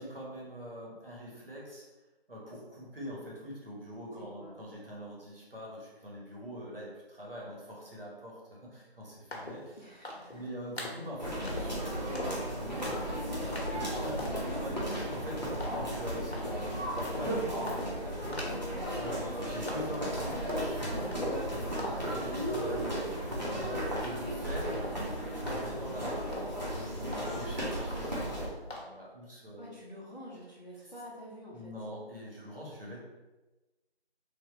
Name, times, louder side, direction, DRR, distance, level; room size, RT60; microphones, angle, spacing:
voice 1, 0.0-1.8 2.3-9.8 10.3-24.9 25.3-26.3 26.7-29.7 30.8-30.9 31.5-33.0, equal, 60° right, -5 dB, 1.1 m, -44 dB
voice 2, 4.2-4.5 9.8-10.4 18.8-19.0 29.6-31.7, left 1 dB, 45° left, -6 dB, 0.7 m, -48 dB
sound 1, 9.3-9.7 10.0-10.4 10.8-11.1 11.4-11.8 12.2-12.5 12.8-13.1 13.5-13.8 14.2-14.5 14.9-15.2 15.6-16.0 16.3-16.7 17.0-17.3 17.7-18.0 18.3-18.7 19.0-19.4 19.7-20.7 21.0-21.5 21.8-22.2 22.5-23.0 23.3-26.0 26.3-26.7 27.1-27.6 27.9-28.3 28.7-28.8, left 1 dB, 75° left, 0.9 m, -41 dB
sound 2, 11.2-28.5, equal, 45° right, 0.8 m, -35 dB
3.4 x 2.2 x 2.6 m, 1.1 s
figure-of-eight pair, 180°, 32 cm